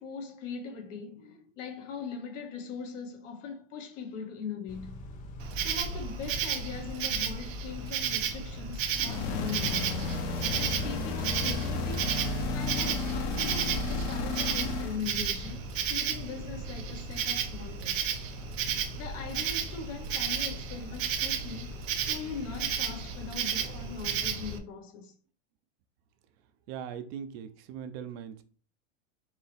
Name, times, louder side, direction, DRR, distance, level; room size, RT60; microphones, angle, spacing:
voice 1, 0.0-4.9 5.6-10.0 10.5-12.2 12.5-18.0 18.9-21.7 22.0-25.1, left 5 dB, 75° left, 1.4 m, -40 dB
Car / Idling / Accelerating revving vroom, 4.7-24.6, left 1 dB, 20° left, 0.3 m, -45 dB
Insect, 5.4-24.6, right 8 dB, 85° right, 0.9 m, -33 dB
sound 1, 8.9-15.0, left 3 dB, 50° left, 0.9 m, -32 dB
voice 2, 26.7-28.4, right 8 dB, 50° right, 0.6 m, -40 dB
4.5 x 2.9 x 3.5 m
supercardioid pair, 130°, 38 cm